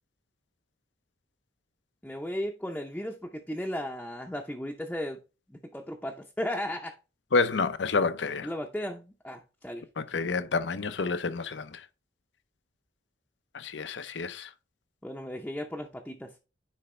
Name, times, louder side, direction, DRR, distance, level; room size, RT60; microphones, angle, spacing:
voice 1, 2.0-5.2 5.5-7.0 8.4-9.9 15.0-16.3, left 1 dB, 5° left, 0.6 m, -35 dB
voice 2, 7.3-8.5 10.0-11.8 13.5-14.5, left 4 dB, 85° left, 0.6 m, -29 dB
9.8 x 3.4 x 3.2 m
head